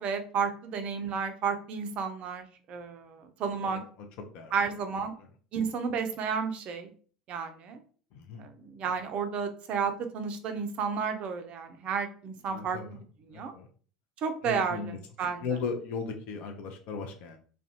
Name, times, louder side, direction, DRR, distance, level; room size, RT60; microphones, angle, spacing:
voice 1, 0.0-3.8 4.5-5.1 5.5-6.9 7.3-7.8 8.4-13.5 14.2-15.6, right 6 dB, 40° right, 7 dB, 0.4 m, -32 dB
voice 2, 8.1-8.5 12.5-13.0 13.3-13.7 14.4-15.0 15.4-17.4, left 5 dB, 50° left, 4 dB, 0.5 m, -36 dB
2.4 x 2.2 x 2.7 m, 0.43 s
figure-of-eight pair, 70°, 3 cm